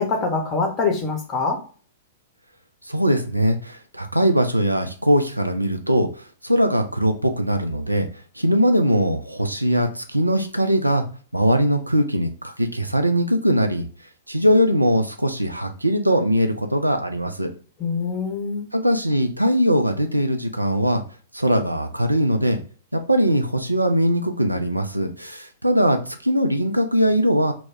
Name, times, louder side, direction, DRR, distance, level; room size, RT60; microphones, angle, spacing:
voice 1, 0.0-1.6 17.8-18.7, left 4 dB, 25° left, 3 dB, 0.7 m, -24 dB
voice 2, 2.9-8.1 8.4-11.0 11.3-13.9 14.3-17.5 18.7-21.0 21.3-22.6 22.9-27.5, equal, 85° right, 7 dB, 0.4 m, -21 dB
2.2 x 2.1 x 3.3 m, 0.39 s
figure-of-eight pair, 105°, 0 cm